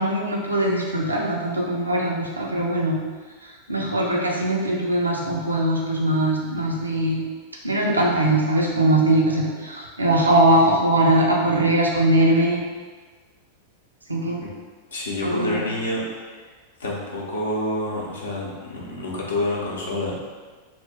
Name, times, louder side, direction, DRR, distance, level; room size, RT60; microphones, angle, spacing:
voice 1, 0.0-3.0 3.7-7.2 7.6-12.6 14.1-14.4 15.2-15.6, right 1 dB, 80° right, -2 dB, 0.5 m, -21 dB
voice 2, 14.9-16.2 16.8-20.2, left 1 dB, 65° left, -3 dB, 0.6 m, -28 dB
2.7 x 2.1 x 3.3 m, 1.4 s
figure-of-eight pair, 90°, 0 cm